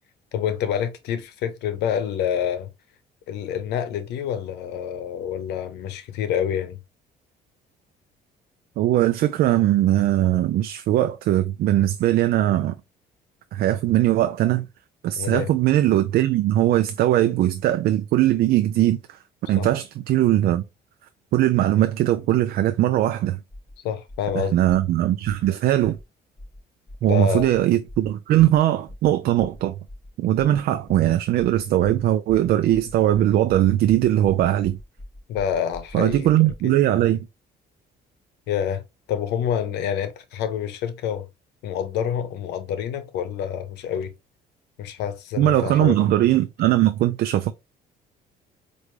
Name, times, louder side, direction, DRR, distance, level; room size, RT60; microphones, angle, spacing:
voice 1, 0.3-2.7 3.3-6.8 15.2-15.5 19.5-19.7 23.8-24.6 27.0-27.5 35.3-36.3 36.6-36.8 38.5-38.8 39.1-41.3 41.6-44.1 44.8-46.1, left 9 dB, 80° left, 0.8 m, -27 dB
voice 2, 8.8-12.7 13.5-14.7 15.0-19.2 19.5-20.6 21.3-23.4 24.5-26.0 27.0-29.7 30.2-34.8 35.9-37.3 45.4-47.5, right 13 dB, 65° right, 0.4 m, -20 dB
sound 1, 23.5-23.7 24.1-24.3 24.7-24.9 25.2-25.5 25.8-26.0 26.4-26.6 26.9-27.1 27.4-27.6 27.9-28.1 28.4-28.6 28.9-29.1 29.4-29.6 29.9-30.1 30.4-30.6 30.9-31.1 31.4-36.7, left 1 dB, 15° left, 2.1 m, -42 dB
4.5 x 2.6 x 3.1 m
cardioid pair, 110°, 17 cm